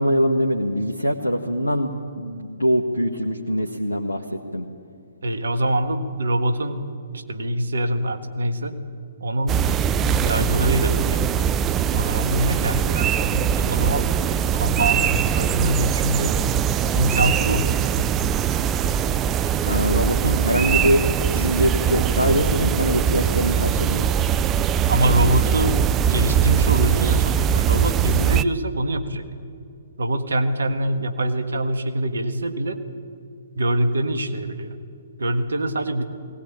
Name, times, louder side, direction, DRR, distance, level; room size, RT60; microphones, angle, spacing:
voice 1, 0.0-1.9 2.1-4.7 19.7-21.0 21.3-24.1, equal, 90° left, 1 dB, 1.5 m, -23 dB
voice 2, 5.2-6.8 7.1-8.7 9.2-9.7 10.0-11.3 11.9-14.2 14.5-16.4 16.9-18.1 24.9-25.8 26.1-29.2 30.0-32.8 33.6-34.8 35.2-36.0, right 1 dB, 70° right, 9 dB, 1.6 m, -24 dB
sound 1, 9.5-28.4, right 8 dB, 20° right, 0.5 m, -21 dB
20.0 x 18.5 x 8.9 m, 2.4 s
figure-of-eight pair, 125°, 0 cm